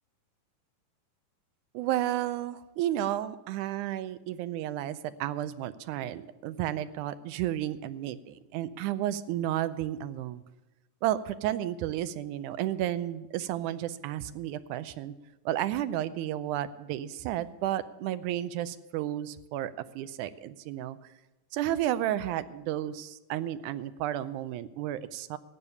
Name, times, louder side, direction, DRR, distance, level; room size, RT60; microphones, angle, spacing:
voice 1, 1.7-10.4 11.0-15.1 15.5-21.0 21.5-25.4, right 12 dB, 80° right, 13 dB, 2.0 m, -32 dB
13.5 x 8.7 x 6.8 m, 1.0 s
omnidirectional pair, 3.7 m